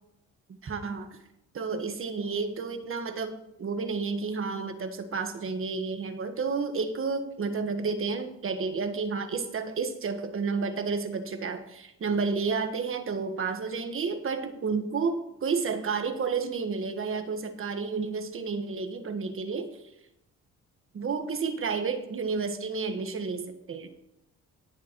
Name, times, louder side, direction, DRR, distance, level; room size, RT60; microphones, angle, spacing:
voice 1, 0.6-1.2 1.5-19.8 20.9-23.9, right 4 dB, 45° right, 7 dB, 1.4 m, -31 dB
19.0 x 7.1 x 3.0 m, 0.86 s
cardioid pair, 90°, 30 cm